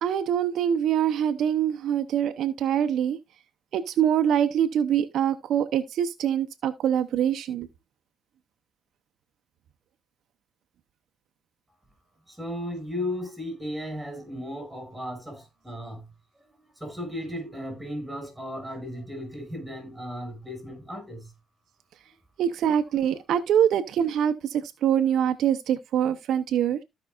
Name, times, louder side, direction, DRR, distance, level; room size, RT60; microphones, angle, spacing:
voice 1, 0.0-3.2 3.7-7.7 22.4-26.8, right 9 dB, 75° right, 0.7 m, -24 dB
voice 2, 12.3-16.1 16.8-21.3, left 1 dB, 5° right, 5.9 m, -35 dB
15.0 x 5.4 x 2.4 m
cardioid pair, 90°, 0 cm